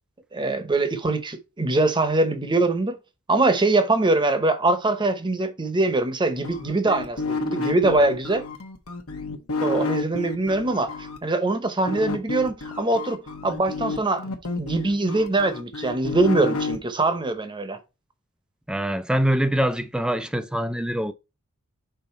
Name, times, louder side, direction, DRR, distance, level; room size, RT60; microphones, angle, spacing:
voice 1, 0.3-3.0 3.3-8.4 9.6-10.9 11.2-17.8, right 2 dB, 20° right, 0.8 m, -23 dB
sound 1, 6.4-11.2 11.9-16.8, left 3 dB, 90° left, 1.1 m, -30 dB
voice 2, 18.7-21.1, equal, 5° right, 0.3 m, -24 dB
5.7 x 3.9 x 4.2 m
head